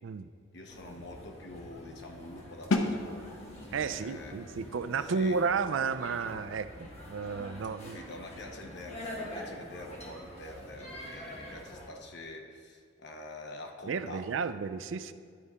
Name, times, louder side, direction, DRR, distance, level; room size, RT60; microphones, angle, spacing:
voice 1, 0.5-3.2 3.9-4.3 5.0-5.4 6.3-6.4 7.8-14.3, left 2 dB, 60° left, 3 dB, 1.0 m, -46 dB
sound 1, 0.7-11.9, left 1 dB, 35° left, 1.6 m, -46 dB
sound 2, 2.7-8.4, left 2 dB, 90° left, 0.8 m, -37 dB
voice 2, 3.7-8.0 13.8-15.1, right 5 dB, 70° right, 12 dB, 0.4 m, -32 dB
12.0 x 4.1 x 4.9 m, 2.2 s
head